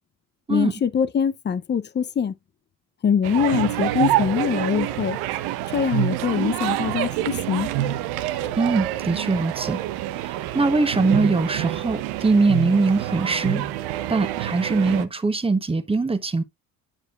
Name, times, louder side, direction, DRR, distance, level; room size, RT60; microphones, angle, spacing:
voice 1, 0.5-2.3 3.0-5.2 5.7-7.7, left 7 dB, 30° left, 0.7 m, -23 dB
sound 1, 3.2-15.0, right 14 dB, 85° right, 0.9 m, -27 dB
voice 2, 8.5-9.8 10.1-13.6 14.1-16.4, right 3 dB, 15° right, 1.1 m, -22 dB
10.0 x 4.9 x 2.5 m
supercardioid pair, 90°, 36 cm